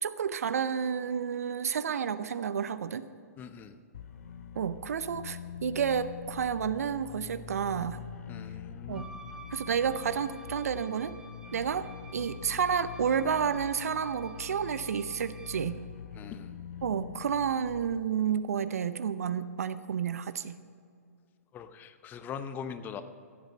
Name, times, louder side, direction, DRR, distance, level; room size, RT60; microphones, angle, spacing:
voice 1, 0.0-3.1 4.6-8.0 8.9-9.1 9.5-11.2 11.5-15.8 16.8-20.6, right 7 dB, 65° right, 13 dB, 0.5 m, -30 dB
voice 2, 3.4-3.8 8.3-9.1 16.2-16.6 21.5-23.0, left 7 dB, 20° left, 11 dB, 0.8 m, -41 dB
sound 1, 3.9-18.0, left 8 dB, 65° left, 0.7 m, -44 dB
Wind instrument woodwind instrument, 8.9-15.7, right 1 dB, 5° right, 1.1 m, -51 dB
15.0 x 7.9 x 6.4 m, 2.3 s
figure-of-eight pair, 115°, 9 cm